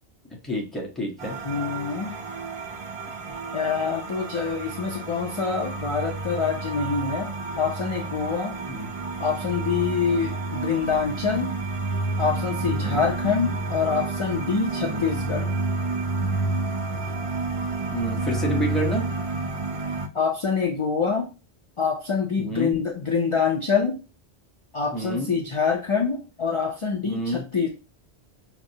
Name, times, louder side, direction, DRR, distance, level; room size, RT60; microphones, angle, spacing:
voice 1, 0.4-1.4 8.7-8.9 12.7-13.0 14.8-15.0 17.9-19.1 22.4-22.8 24.9-25.3 27.1-27.4, equal, ahead, -2 dB, 0.8 m, -29 dB
sound 1, 1.2-20.1, right 3 dB, 65° right, 0.3 m, -30 dB
voice 2, 1.4-2.1 3.5-7.3 7.6-8.5 9.2-11.5 12.2-15.5 20.1-21.3 21.8-24.0 24.7-27.7, left 5 dB, 35° left, 0 dB, 0.5 m, -25 dB
5.9 x 2.0 x 2.7 m, 0.32 s
omnidirectional pair, 1.1 m